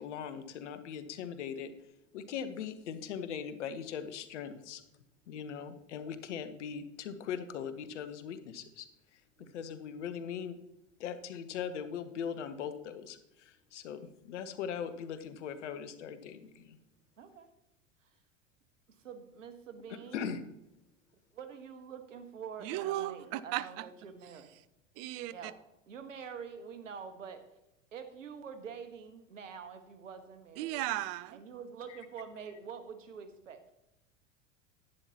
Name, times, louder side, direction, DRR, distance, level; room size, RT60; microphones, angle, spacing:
voice 1, 0.0-1.7 2.1-4.8 5.3-8.9 9.1-10.6 11.0-16.8 20.1-20.4 31.9-32.0, left 7 dB, 65° left, 1.0 m, -40 dB
voice 2, 17.2-17.5 19.0-20.3 21.3-24.5 25.3-25.6 25.9-27.4 27.9-30.9 31.3-33.7, right 6 dB, 80° right, 1.3 m, -46 dB
voice 3, 22.6-23.9 24.2-24.4 25.0-25.5 30.6-31.4, right 14 dB, 40° right, 0.6 m, -36 dB
11.0 x 9.9 x 2.9 m
figure-of-eight pair, 85°, 38 cm